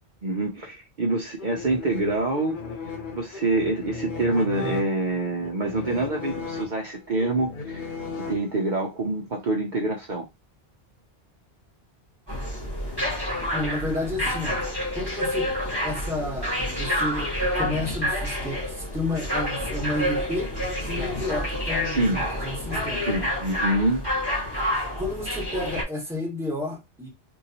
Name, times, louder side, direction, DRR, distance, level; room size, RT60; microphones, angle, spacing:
voice 1, 0.2-2.6 3.1-7.9 8.2-10.3 21.8-22.2 23.1-24.0, right 2 dB, 50° right, 0.8 m, -26 dB
sound 1, 1.4-8.9, left 4 dB, 55° left, 0.8 m, -36 dB
sound 2, 12.3-25.8, left 1 dB, 20° left, 1.5 m, -28 dB
voice 2, 13.5-14.6 14.9-15.5 15.8-17.3 17.5-20.5 20.9-23.1 25.0-27.1, left 2 dB, 5° right, 1.2 m, -31 dB
3.8 x 2.7 x 2.8 m
omnidirectional pair, 1.1 m